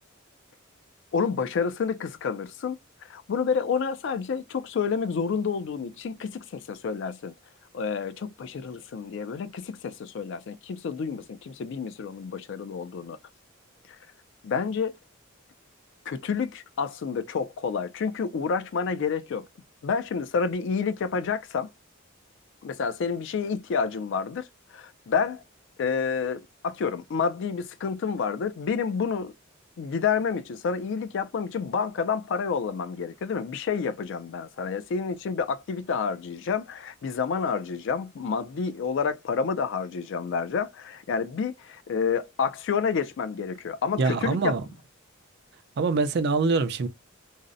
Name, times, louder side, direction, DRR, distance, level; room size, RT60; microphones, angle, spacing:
voice 1, 1.1-2.8 3.1-7.3 7.7-13.2 14.4-14.9 16.1-19.5 19.8-21.7 22.6-24.5 24.7-25.4 25.8-29.3 29.8-44.6, left 5 dB, 60° left, 0.3 m, -29 dB
voice 2, 44.0-44.6 45.8-46.9, right 4 dB, 50° right, 0.4 m, -24 dB
2.6 x 2.0 x 2.4 m
head